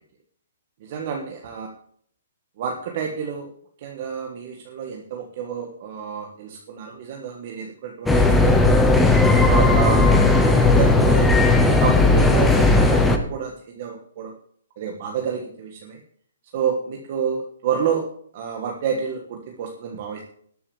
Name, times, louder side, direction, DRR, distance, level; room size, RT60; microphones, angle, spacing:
voice 1, 0.8-1.7 2.6-3.5 3.8-8.8 9.4-10.1 10.3-11.4 11.8-14.3 14.8-16.0 16.5-18.1 18.3-20.2, right 7 dB, 35° right, 2 dB, 1.5 m, -29 dB
sound 1, 8.1-13.2, left 2 dB, 5° left, 0.9 m, -16 dB
12.5 x 6.9 x 7.1 m, 0.62 s
hypercardioid pair, 170°, 0 cm